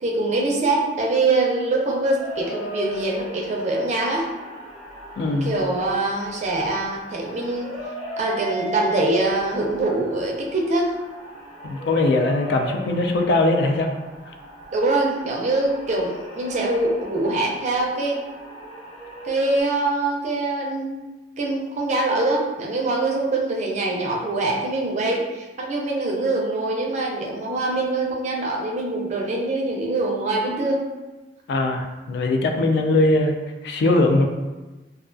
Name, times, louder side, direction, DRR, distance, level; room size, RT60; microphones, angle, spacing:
voice 1, 0.0-4.3 5.3-7.7 8.2-10.9 14.7-18.2 19.2-21.0 21.4-30.8, right 2 dB, 40° right, -1 dB, 0.4 m, -24 dB
sound 1, 2.2-19.6, equal, 45° left, 1.1 m, -38 dB
voice 2, 5.2-5.5 11.6-13.9 31.5-33.3 33.6-34.2, left 2 dB, 70° left, 3 dB, 0.3 m, -20 dB
2.3 x 2.2 x 2.4 m, 1.1 s
head